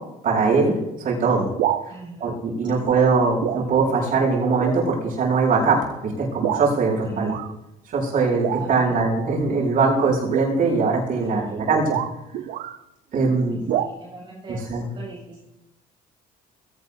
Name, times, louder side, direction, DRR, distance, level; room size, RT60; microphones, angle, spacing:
voice 1, 0.2-1.5 1.8-1.9 2.2-7.3 7.9-12.0 13.1-13.6 14.5-14.9, right 4 dB, 55° right, -3 dB, 7.7 m, -21 dB
sound 1, 1.5-1.9 2.8-3.1 3.4-3.7 4.1-4.2 4.6-4.8 5.5-5.7 6.4-6.7 7.2-7.5 8.4-8.9 10.2-12.8 13.7-13.9, right 11 dB, 75° right, 0.8 m, -28 dB
voice 2, 1.9-2.4 2.7-3.0 7.0-7.4 8.6-9.1 11.2-11.7 13.5-15.4, right 3 dB, 25° right, -4 dB, 7.3 m, -39 dB
22.0 x 17.5 x 2.8 m, 0.91 s
cardioid pair, 110°, 17 cm